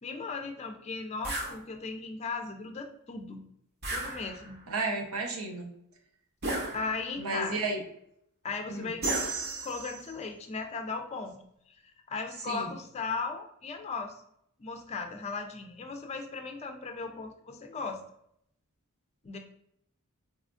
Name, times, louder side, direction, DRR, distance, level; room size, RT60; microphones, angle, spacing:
voice 1, 0.0-3.4 3.9-4.6 6.7-7.6 8.4-9.0 9.6-11.4 11.7-11.8 12.1-14.2 14.6-18.0 19.2-19.4, left 4 dB, 30° left, 5 dB, 0.4 m, -37 dB
sound 1, 1.2-1.6 3.8-4.6 6.4-7.2 9.0-10.1, right 2 dB, 50° right, 0.9 m, -34 dB
voice 2, 4.7-5.7 7.2-7.8 8.7-8.9 12.5-12.7, right 3 dB, 80° right, 2 dB, 0.8 m, -32 dB
4.1 x 2.3 x 2.4 m, 0.72 s
head